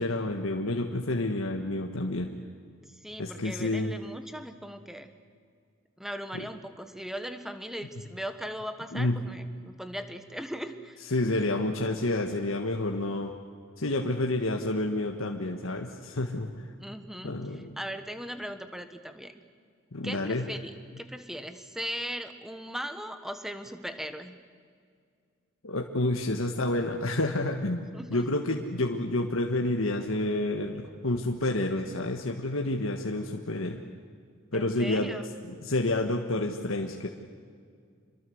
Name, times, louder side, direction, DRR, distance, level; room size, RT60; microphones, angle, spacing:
voice 1, 0.0-2.3 3.2-3.9 8.9-9.2 11.1-13.3 13.8-16.5 17.2-17.7 19.9-20.4 25.6-33.8 34.5-35.1 35.5-37.1, left 2 dB, 80° left, 2 dB, 1.6 m, -29 dB
voice 2, 2.8-5.1 6.0-11.0 16.8-19.4 20.0-24.4 27.9-28.3 34.5-35.3, equal, ahead, 9 dB, 1.3 m, -39 dB
27.0 x 22.5 x 8.0 m, 2.1 s
head